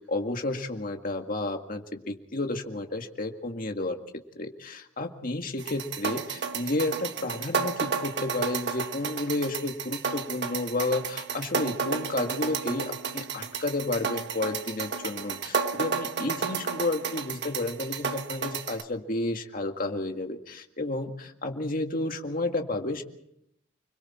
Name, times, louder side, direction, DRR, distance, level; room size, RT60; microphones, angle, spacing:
voice 1, 0.0-4.0 4.4-23.0, left 2 dB, 45° left, 4 dB, 2.0 m, -31 dB
sound 1, 5.6-18.8, right 5 dB, 60° right, 1.5 m, -32 dB
29.5 x 22.0 x 4.4 m, 0.77 s
head